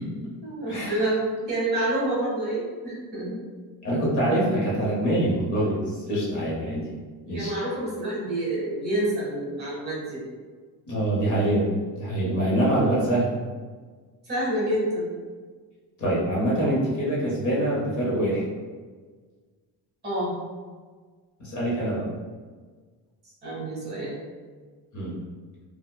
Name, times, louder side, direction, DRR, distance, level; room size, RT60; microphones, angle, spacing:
voice 1, 0.0-3.4 7.2-10.2 14.3-15.1 20.0-20.3 23.4-24.1, right 1 dB, 25° right, -7 dB, 1.1 m, -28 dB
voice 2, 0.7-1.1 3.8-6.9 7.3-7.5 10.9-11.7 12.0-13.3 16.0-18.4 21.4-22.1 24.9-25.2, right 1 dB, 45° left, -5 dB, 0.9 m, -25 dB
4.3 x 2.2 x 2.2 m, 1.5 s
cardioid pair, 175°, 41 cm